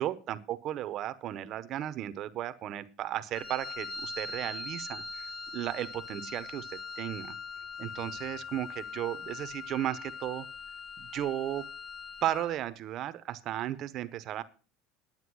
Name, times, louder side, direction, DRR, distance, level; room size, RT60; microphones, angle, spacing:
voice 1, 0.0-7.4 7.8-10.5 11.0-11.7 12.2-14.4, right 12 dB, 40° right, 13 dB, 0.9 m, -35 dB
Wind instrument woodwind instrument, 3.3-12.6, left 4 dB, 30° left, 2.1 m, -41 dB
9.7 x 9.2 x 6.1 m, 0.36 s
cardioid pair, 150°, 0 cm